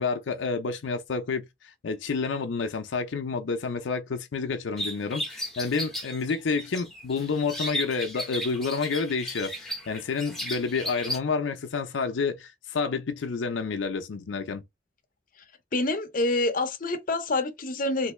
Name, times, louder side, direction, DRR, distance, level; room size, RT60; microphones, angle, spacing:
voice 1, 0.0-14.6, left 4 dB, 85° left, 0.5 m, -29 dB
sound 1, 4.8-11.2, equal, ahead, 0.8 m, -35 dB
voice 2, 15.7-18.1, left 2 dB, 45° left, 0.6 m, -27 dB
3.0 x 2.6 x 3.1 m
head